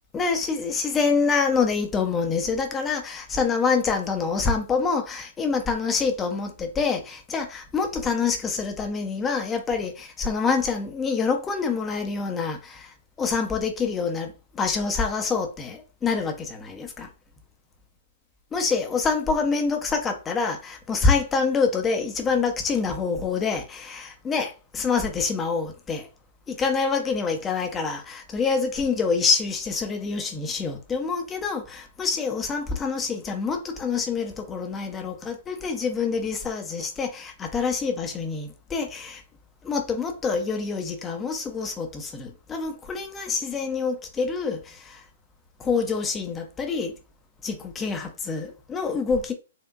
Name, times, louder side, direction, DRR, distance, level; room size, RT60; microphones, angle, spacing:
voice 1, 0.1-17.1 18.5-26.1 26.5-39.2 39.6-45.0 45.6-46.9 47.4-49.3, left 5 dB, 15° left, 0.9 m, -26 dB
4.5 x 2.7 x 2.6 m
figure-of-eight pair, 115°, 0 cm